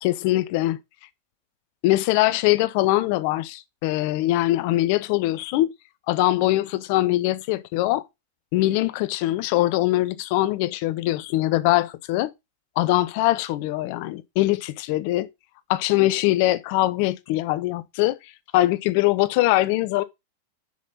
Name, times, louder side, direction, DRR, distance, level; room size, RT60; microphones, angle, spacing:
voice 1, 0.0-0.8 1.8-5.7 6.1-8.0 8.5-12.3 12.8-15.3 15.7-18.2 18.5-20.0, left 17 dB, 45° left, 0.7 m, -22 dB
6.4 x 5.5 x 5.6 m
figure-of-eight pair, 90°, 0 cm